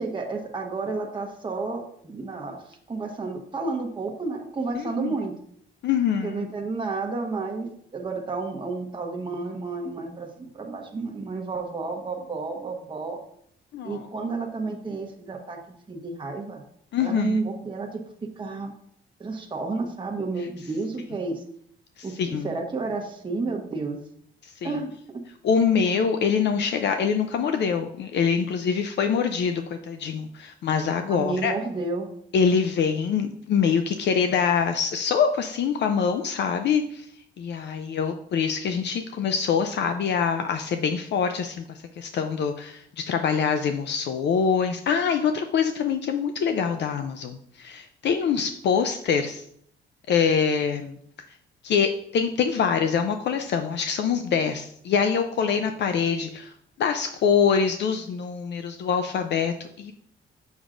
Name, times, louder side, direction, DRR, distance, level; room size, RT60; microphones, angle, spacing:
voice 1, 0.0-5.3 6.2-13.2 13.8-15.6 15.9-16.6 17.0-18.7 19.2-21.4 22.0-24.0 24.6-25.2 31.1-32.1, right 3 dB, 25° right, 0 dB, 1.1 m, -31 dB
voice 2, 4.7-5.1 5.8-6.5 13.7-14.1 16.9-17.4 22.0-22.5 24.4-24.7 25.4-31.5 32.3-37.1 37.4-49.4 50.1-51.0 51.6-56.5 56.8-59.9, left 6 dB, 60° left, 7 dB, 0.5 m, -24 dB
7.1 x 6.3 x 2.5 m, 0.67 s
cardioid pair, 90°, 20 cm